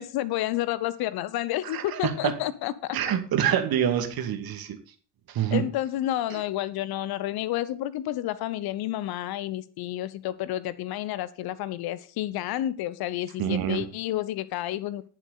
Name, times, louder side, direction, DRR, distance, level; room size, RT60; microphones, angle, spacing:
voice 1, 0.0-3.0 5.5-15.1, left 14 dB, 50° left, 17 dB, 1.1 m, -30 dB
voice 2, 1.6-2.3 2.9-4.8 5.3-5.6 6.3-6.4 13.4-13.8, right 9 dB, 45° right, 6 dB, 2.4 m, -26 dB
18.5 x 7.5 x 4.1 m, 0.38 s
figure-of-eight pair, 50°, 48 cm